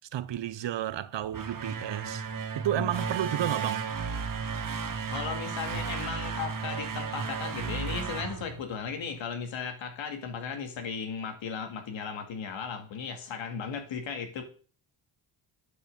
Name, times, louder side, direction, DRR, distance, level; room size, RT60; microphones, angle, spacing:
voice 1, 0.1-2.3 2.5-3.9, right 11 dB, 70° right, 0.9 m, -31 dB
sound 1, 1.2-9.2, right 5 dB, 45° right, 1.6 m, -34 dB
voice 2, 5.1-14.4, left 6 dB, 90° left, 2.4 m, -36 dB
11.0 x 5.9 x 6.8 m
cardioid pair, 70°, 45 cm